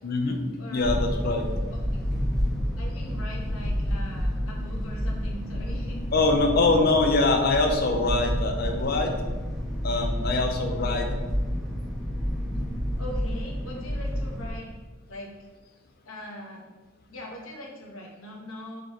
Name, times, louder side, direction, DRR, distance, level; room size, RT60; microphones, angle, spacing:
voice 1, 0.0-0.4 0.7-1.5 6.1-9.1 9.8-11.1, left 3 dB, 50° left, 3 dB, 0.5 m, -23 dB
voice 2, 0.6-0.9 2.8-6.0 13.0-14.7 15.1-15.3 16.0-16.7 17.1-18.8, left 1 dB, 90° left, -1 dB, 0.9 m, -41 dB
sound 1, 0.8-14.5, equal, ahead, 0.7 m, -29 dB
3.2 x 3.0 x 3.9 m, 1.3 s
head